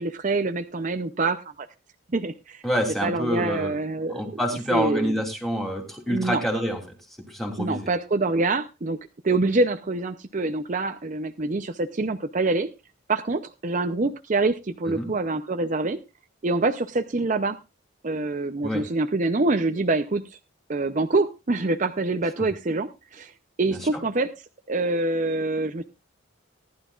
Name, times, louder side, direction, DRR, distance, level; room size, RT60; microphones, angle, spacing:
voice 1, 0.0-1.7 2.1-2.6 3.0-4.1 4.7-5.2 6.1-6.4 7.6-9.0 9.2-12.7 13.1-16.0 16.4-17.6 18.0-20.2 20.7-23.3 23.6-24.3 24.7-25.8, right 3 dB, 40° right, 7 dB, 0.6 m, -25 dB
voice 2, 2.6-3.8 4.1-7.0 7.2-7.9 14.9-15.1 18.6-18.9 22.4-22.5 23.7-24.0, equal, ahead, 2 dB, 2.9 m, -27 dB
19.0 x 11.5 x 2.4 m, 0.26 s
head